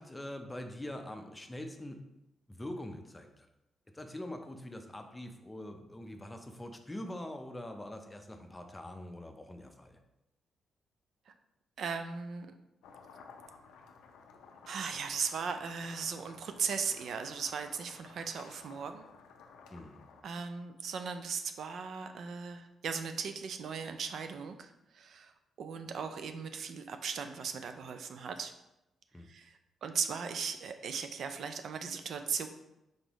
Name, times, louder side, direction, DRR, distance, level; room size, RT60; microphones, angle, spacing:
voice 1, 0.0-2.0 2.5-3.5 3.9-10.0 19.7-20.0 29.1-29.3, left 1 dB, 15° left, 5 dB, 0.5 m, -44 dB
voice 2, 11.8-12.5 14.7-19.1 20.2-25.3 25.6-28.5 29.3-32.5, right 6 dB, 70° right, 7 dB, 0.3 m, -38 dB
sound 1, 12.8-20.2, left 5 dB, 90° left, 0.4 m, -55 dB
3.9 x 3.7 x 3.0 m, 0.91 s
cardioid pair, 75°, 0 cm